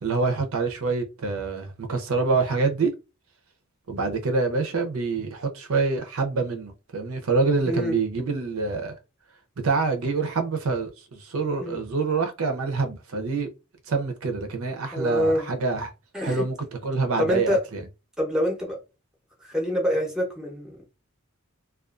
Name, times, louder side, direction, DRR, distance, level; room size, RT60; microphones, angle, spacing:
voice 1, 0.0-2.9 3.9-8.9 9.6-13.5 13.9-15.9 16.2-16.6 16.8-17.8, right 4 dB, 75° right, 0.6 m, -26 dB
voice 2, 14.9-15.5 16.1-16.5 17.2-17.6 18.2-18.8 19.5-20.8, equal, 5° right, 0.7 m, -25 dB
2.4 x 2.3 x 2.3 m
head